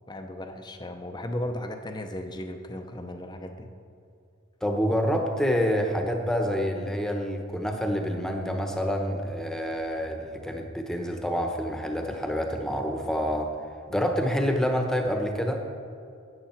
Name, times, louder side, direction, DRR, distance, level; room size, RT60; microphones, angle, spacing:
voice 1, 0.1-3.7, left 1 dB, 20° left, 5 dB, 0.6 m, -36 dB
voice 2, 4.6-13.5 13.9-15.6, equal, 5° left, 3 dB, 1.0 m, -27 dB
13.0 x 10.0 x 4.5 m, 2.5 s
head